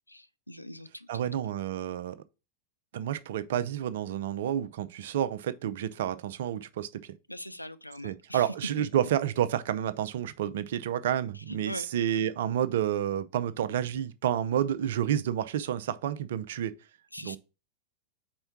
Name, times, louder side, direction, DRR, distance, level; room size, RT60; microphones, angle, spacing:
voice 1, 0.1-1.3 7.3-8.5 11.5-11.9 17.1-17.4, left 1 dB, 85° left, 0.4 m, -42 dB
voice 2, 1.1-2.2 2.9-7.1 8.0-16.7 17.2-17.4, right 10 dB, 55° right, 0.5 m, -30 dB
4.4 x 4.4 x 5.8 m
figure-of-eight pair, 90°, 0 cm